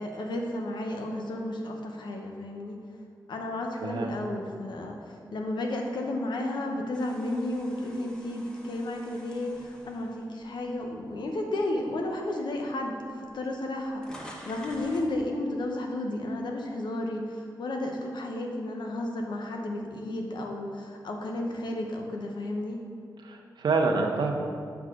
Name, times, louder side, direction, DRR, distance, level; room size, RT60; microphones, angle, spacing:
voice 1, 0.0-2.8 3.3-22.8, left 1 dB, 80° left, 2 dB, 0.9 m, -33 dB
voice 2, 3.8-4.2 23.2-24.5, right 3 dB, 75° right, 2 dB, 0.8 m, -27 dB
sound 1, 6.9-11.2 11.7-11.9 12.8-12.9 13.1-15.2, equal, 10° left, 0.9 m, -49 dB
7.9 x 4.8 x 3.7 m, 2.2 s
cardioid pair, 80°, 8 cm